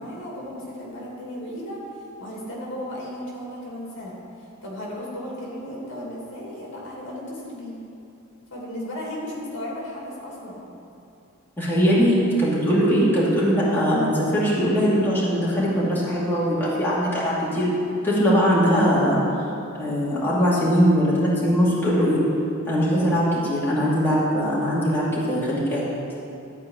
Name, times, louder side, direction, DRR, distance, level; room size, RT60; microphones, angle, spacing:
voice 1, 0.0-1.8 2.2-4.1 4.6-7.8 8.5-10.6 19.8-20.2, left 1 dB, 60° left, -4 dB, 2.5 m, -35 dB
voice 2, 11.6-17.7 18.0-19.2 19.8-22.2 22.7-25.8, equal, 10° left, -9 dB, 2.5 m, -21 dB
13.5 x 4.8 x 8.7 m, 2.7 s
head